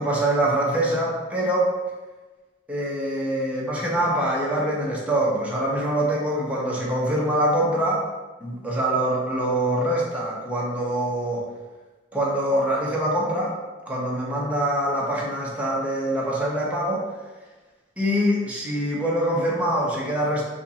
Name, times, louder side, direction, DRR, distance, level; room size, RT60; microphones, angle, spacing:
voice 1, 0.0-1.7 2.7-8.0 8.4-11.4 12.1-13.5 13.9-17.1 18.0-20.4, right 1 dB, 10° right, -5 dB, 0.9 m, -24 dB
4.5 x 2.4 x 4.0 m, 1.2 s
head